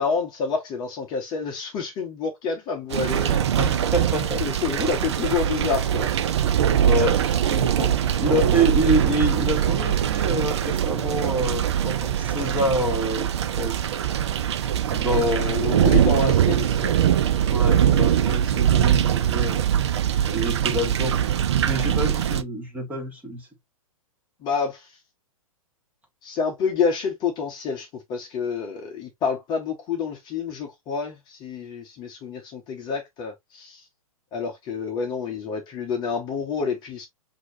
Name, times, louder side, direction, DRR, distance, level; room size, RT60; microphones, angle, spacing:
voice 1, 0.0-3.5 4.4-6.1 15.0-16.9 24.4-24.9 26.2-33.8 34.3-37.1, left 5 dB, 25° left, 1.1 m, -28 dB
sound 1, 2.9-22.4, right 10 dB, 50° right, 0.5 m, -22 dB
voice 2, 3.6-4.4 4.8-4.9 6.8-13.3 13.6-13.8 14.9-15.4 17.5-19.6 20.3-21.2 21.6-23.5, equal, 10° right, 1.5 m, -27 dB
6.1 x 2.9 x 2.6 m
figure-of-eight pair, 110°, 18 cm